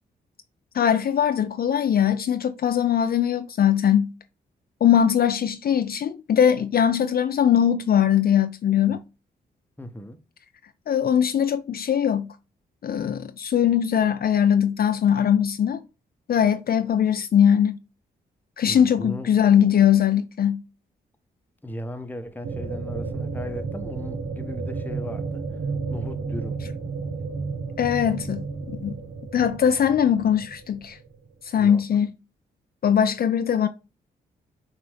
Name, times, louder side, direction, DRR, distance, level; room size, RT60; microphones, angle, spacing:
voice 1, 0.7-4.1 4.8-9.0 10.9-12.3 12.8-15.8 16.3-17.8 18.6-20.6 27.8-28.9 29.3-31.0 31.4-32.1 32.8-33.7, left 9 dB, 55° left, 0.5 m, -21 dB
voice 2, 9.8-10.2 18.7-19.3 21.6-25.4 25.9-26.6 31.6-31.8, left 1 dB, 10° left, 0.9 m, -36 dB
sound 1, 22.4-31.2, right 4 dB, 65° right, 0.9 m, -32 dB
6.0 x 2.6 x 3.4 m
supercardioid pair, 45°, 19 cm